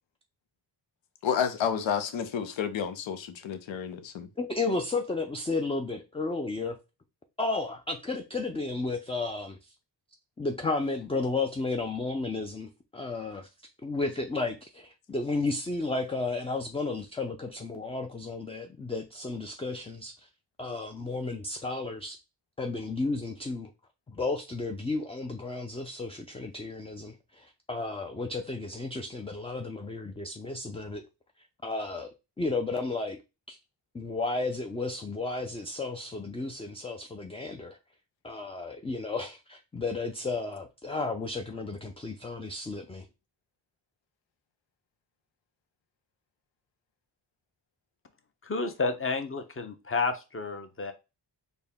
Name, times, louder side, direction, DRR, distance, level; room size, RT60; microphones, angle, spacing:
voice 1, 1.2-4.3, left 7 dB, 85° left, 0.7 m, -30 dB
voice 2, 4.4-6.8 7.4-9.7 10.4-13.5 13.8-20.3 20.6-22.2 22.6-23.7 24.1-31.0 31.6-33.2 33.5-33.6 33.9-37.8 38.2-43.1, left 3 dB, 15° left, 0.4 m, -33 dB
voice 3, 48.4-50.9, left 3 dB, 30° left, 0.8 m, -31 dB
4.1 x 2.2 x 3.5 m
cardioid pair, 85°, 44 cm